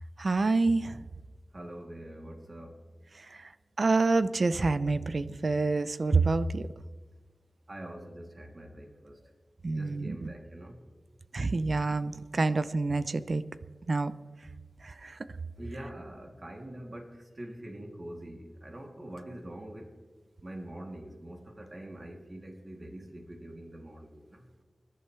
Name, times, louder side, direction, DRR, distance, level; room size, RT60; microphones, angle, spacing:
voice 1, 0.2-1.0 3.8-6.7 9.6-10.3 11.3-13.4 13.9-14.1 15.0-15.1, right 3 dB, 60° right, 14 dB, 0.7 m, -27 dB
voice 2, 1.5-2.8 7.7-9.2 9.7-10.8 15.6-19.9 20.4-24.4, right 1 dB, 40° right, 1 dB, 3.0 m, -44 dB
25.5 x 11.5 x 3.4 m, 1.5 s
wide cardioid pair, 60°, 0 cm